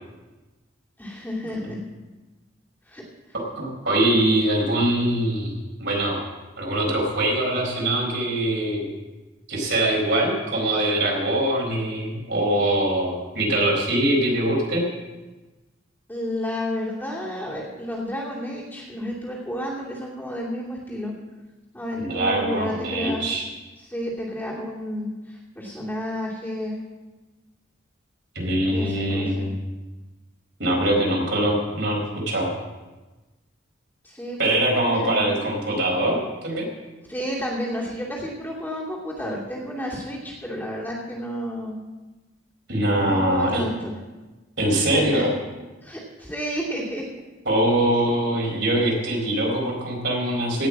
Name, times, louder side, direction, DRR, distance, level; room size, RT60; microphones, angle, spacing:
voice 1, 1.0-1.8 2.9-3.0 16.1-21.1 21.7-23.2 23.8-26.8 28.7-29.4 34.0-34.6 34.9-35.4 37.1-41.8 43.0-43.9 44.7-45.3 45.8-47.0, equal, 10° left, -5 dB, 2.7 m, -31 dB
voice 2, 3.5-6.2 6.6-8.9 9.5-14.8 22.0-23.5 28.3-29.5 30.6-32.5 34.4-36.7 42.7-43.6 44.6-45.3 47.4-50.7, right 1 dB, 60° right, -2 dB, 4.4 m, -23 dB
17.5 x 6.3 x 7.3 m, 1.2 s
head